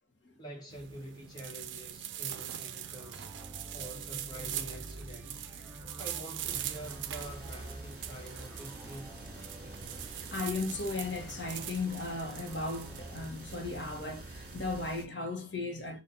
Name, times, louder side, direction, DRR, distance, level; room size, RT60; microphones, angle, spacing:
voice 1, 0.4-3.3 3.7-5.5 6.0-9.1, right 1 dB, 20° left, 1.2 m, -46 dB
sound 1, 0.7-14.9, right 11 dB, 80° right, 0.4 m, -43 dB
sound 2, 2.2-13.3, right 1 dB, 10° right, 0.5 m, -49 dB
sound 3, 6.4-15.0, right 2 dB, 50° right, 1.9 m, -48 dB
voice 2, 10.0-16.0, left 3 dB, 80° left, 1.0 m, -36 dB
3.9 x 2.4 x 4.3 m
head